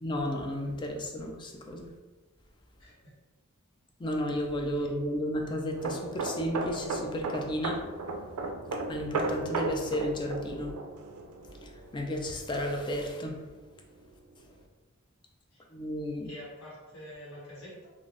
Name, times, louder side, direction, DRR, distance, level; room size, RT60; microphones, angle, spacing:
voice 1, 0.0-1.9 4.0-7.8 8.9-10.7 11.9-13.3 15.7-16.3, equal, 20° left, 2 dB, 0.3 m, -33 dB
voice 2, 2.8-3.1 4.8-4.9 15.5-15.6 16.2-17.9, left 1 dB, 65° left, -6 dB, 1.3 m, -47 dB
sound 1, 5.7-13.2 13.5-13.8, right 3 dB, 85° right, 0.4 m, -35 dB
3.3 x 2.4 x 2.5 m, 1.2 s
head